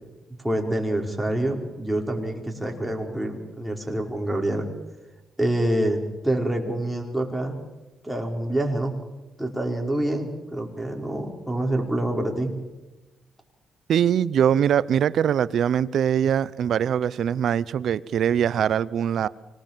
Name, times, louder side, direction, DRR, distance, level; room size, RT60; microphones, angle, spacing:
voice 1, 0.4-4.7 5.4-7.6 8.0-9.0 9.4-12.5, right 1 dB, 5° right, 5.0 m, -26 dB
voice 2, 13.9-19.3, right 9 dB, 70° right, 0.7 m, -22 dB
25.0 x 19.5 x 7.5 m
cardioid pair, 70°, 0 cm